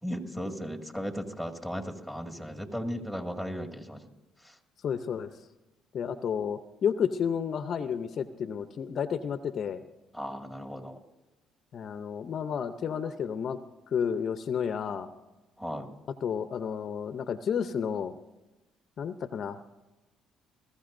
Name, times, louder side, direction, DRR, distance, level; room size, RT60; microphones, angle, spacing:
voice 1, 0.0-4.0 4.4-4.5 10.1-11.0 15.6-15.9, equal, 5° right, 2 dB, 2.1 m, -36 dB
voice 2, 4.8-5.3 5.9-9.8 11.7-13.6 13.9-15.1 16.2-18.1 19.0-19.6, left 7 dB, 55° left, 10 dB, 0.7 m, -31 dB
21.0 x 14.5 x 2.6 m, 1.1 s
supercardioid pair, 65°, 0 cm